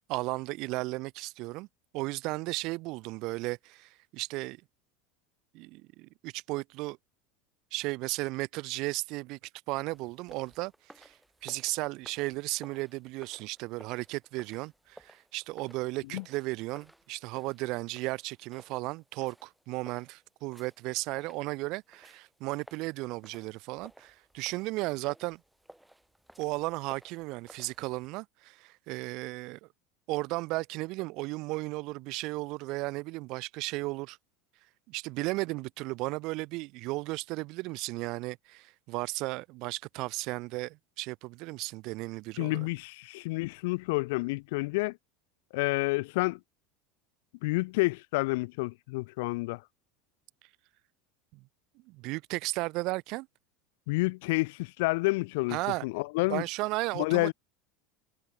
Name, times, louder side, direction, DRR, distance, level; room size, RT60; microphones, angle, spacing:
voice 1, 0.1-1.7 1.9-4.6 5.5-7.0 7.7-9.4 9.7-11.1 11.4-25.4 26.4-29.7 30.1-34.2 34.9-42.7 51.3-51.4 51.9-53.3 55.5-55.8 56.3-57.3, right 22 dB, 60° right, 0.7 m, -35 dB
sound 1, 9.9-28.1, right 1 dB, 5° right, 2.2 m, -57 dB
voice 2, 42.4-45.0 45.5-46.4 47.4-49.6 53.9-55.6 55.8-56.4 56.9-57.3, left 24 dB, 70° left, 0.4 m, -29 dB
hypercardioid pair, 85°, 0 cm